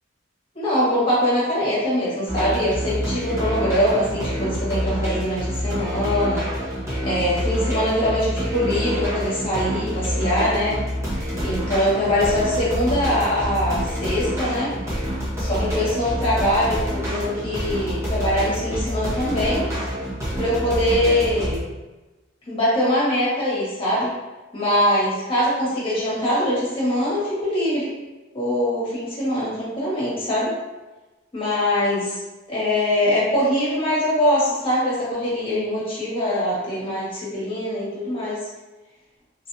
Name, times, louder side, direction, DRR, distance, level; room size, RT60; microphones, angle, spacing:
voice 1, 0.5-6.5 7.0-10.8 11.4-14.7 15.4-19.7 20.4-21.6 22.5-24.1 24.5-27.9 28.3-30.5 31.3-32.2 32.5-38.4, left 1 dB, 30° left, -8 dB, 1.3 m, -23 dB
sound 1, 2.3-21.6, equal, 15° right, 0.8 m, -27 dB
2.9 x 2.6 x 2.6 m, 1.1 s
head